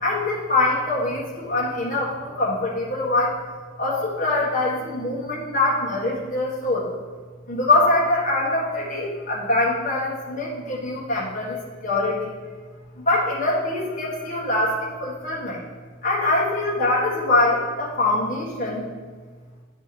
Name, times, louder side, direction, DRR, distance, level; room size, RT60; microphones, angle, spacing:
voice 1, 0.0-3.4 3.8-6.9 7.5-12.3 13.0-15.6 16.0-18.9, left 2 dB, 40° left, -5 dB, 1.5 m, -23 dB
10.0 x 3.4 x 4.7 m, 1.4 s
head